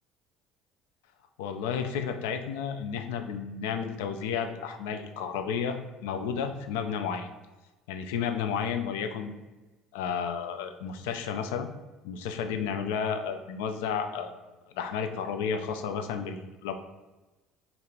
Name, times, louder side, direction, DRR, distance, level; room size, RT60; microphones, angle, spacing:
voice 1, 1.4-7.3 7.9-9.3 9.9-11.7 12.0-14.4 14.8-16.7, left 7 dB, 70° left, 7 dB, 0.3 m, -32 dB
2.8 x 2.7 x 4.4 m, 1.1 s
figure-of-eight pair, 60°, 0 cm